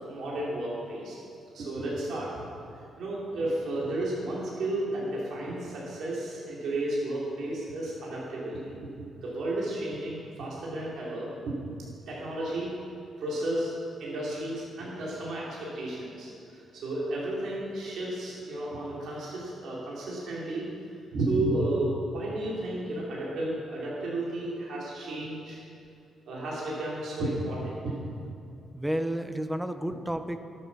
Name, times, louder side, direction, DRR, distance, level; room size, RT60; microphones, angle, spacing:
voice 1, 0.1-1.2 1.5-2.5 3.0-8.9 9.2-11.5 12.1-12.7 13.2-13.7 14.0-20.7 21.1-25.6 26.3-28.0, right 1 dB, 70° right, -6 dB, 3.2 m, -32 dB
voice 2, 28.7-30.4, right 1 dB, 5° right, 9 dB, 0.7 m, -31 dB
12.0 x 7.8 x 6.1 m, 2.5 s
cardioid pair, 100°, 0 cm